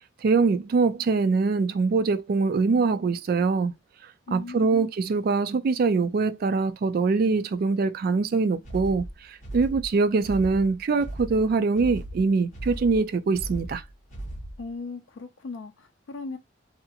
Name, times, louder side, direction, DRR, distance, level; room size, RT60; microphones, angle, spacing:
voice 1, 0.2-3.7 4.3-13.8, right 4 dB, 50° right, 0.3 m, -23 dB
voice 2, 4.3-4.8 14.6-16.4, left 3 dB, 75° left, 0.4 m, -38 dB
sound 1, 8.6-14.7, right 1 dB, 40° left, 1.0 m, -37 dB
2.8 x 2.4 x 2.6 m
head